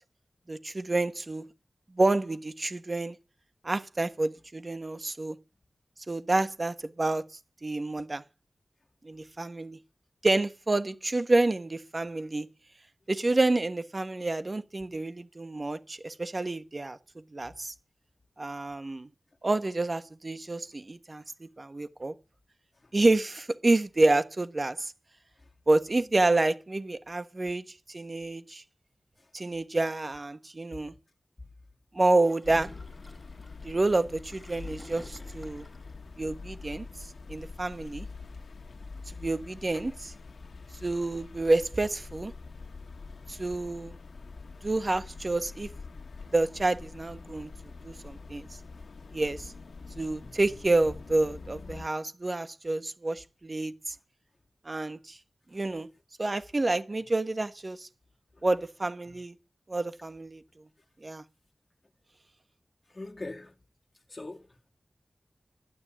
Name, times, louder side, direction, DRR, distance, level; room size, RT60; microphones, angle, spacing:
voice 1, 0.5-1.4 1.9-3.2 3.6-5.4 6.1-7.2 7.6-8.2 9.0-9.8 10.2-12.5 13.1-17.0 17.3-17.7 18.4-19.1 19.4-22.1 22.9-24.9 25.7-28.6 29.3-30.9 31.9-32.7 33.6-35.7 36.2-36.9 37.3-38.1 39.1-40.1 40.8-42.3 43.3-44.0 44.6-45.7 46.3-47.5 47.8-48.5 49.1-49.5 50.0-53.9 54.6-55.2 55.5-55.9 56.2-57.9 58.4-59.3 59.7-60.4 61.0-61.2, right 2 dB, 40° right, 1.2 m, -28 dB
Gurgling / Toilet flush, 32.2-36.0, left 1 dB, 15° left, 4.3 m, -51 dB
sound 1, 32.4-51.9, left 4 dB, 85° left, 1.3 m, -45 dB
voice 2, 62.9-63.6 64.1-64.7, left 2 dB, 35° left, 2.0 m, -43 dB
12.0 x 9.8 x 9.9 m
wide cardioid pair, 75°, 0 cm